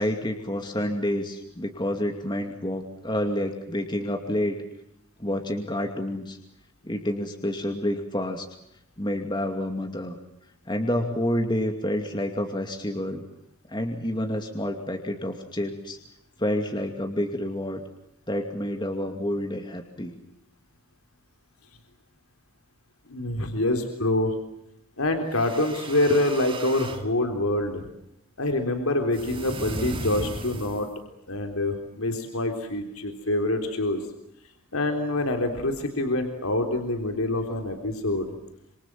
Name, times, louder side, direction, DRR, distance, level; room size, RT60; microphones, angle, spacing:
voice 1, 0.0-4.6 5.2-6.4 6.8-8.5 9.0-10.2 10.7-13.2 13.7-16.0 16.4-17.8 18.3-20.1, left 1 dB, 20° left, 4 dB, 2.5 m, -28 dB
voice 2, 23.1-24.3 25.0-27.9 28.4-30.9 31.3-34.0 34.7-38.3, left 1 dB, 85° left, 5 dB, 3.8 m, -26 dB
sound 1, 25.2-27.1 29.1-31.0, right 2 dB, 25° right, 2.2 m, -36 dB
28.0 x 27.5 x 7.6 m, 0.81 s
head